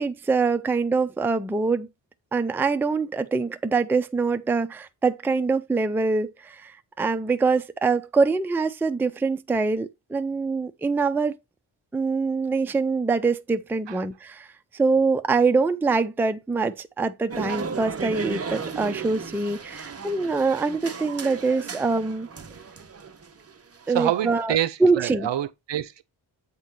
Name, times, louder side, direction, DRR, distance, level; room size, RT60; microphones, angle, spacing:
voice 1, 0.0-1.9 2.3-11.4 11.9-14.5 14.7-22.3 23.9-24.5 24.8-25.3, right 4 dB, 5° right, 0.4 m, -24 dB
sound 1, 17.3-24.4, right 5 dB, 30° right, 0.8 m, -35 dB
voice 2, 23.9-26.0, right 11 dB, 65° right, 0.6 m, -27 dB
8.2 x 3.0 x 5.2 m
wide cardioid pair, 100°, 48 cm